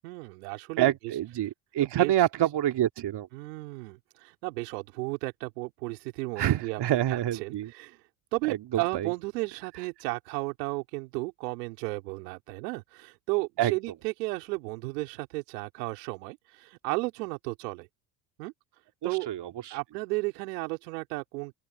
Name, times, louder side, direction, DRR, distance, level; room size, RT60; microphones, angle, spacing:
voice 1, 0.0-1.2 1.8-2.1 3.3-6.8 7.1-8.0 8.3-17.9 18.4-18.5 19.0-19.3 19.7-21.5, right 25 dB, 80° right, 4.5 m, -34 dB
voice 2, 0.8-3.3 6.4-7.7 8.5-9.1 13.6-13.7 19.0-19.8, right 12 dB, 55° right, 2.8 m, -27 dB
open air
hypercardioid pair, 65°, 49 cm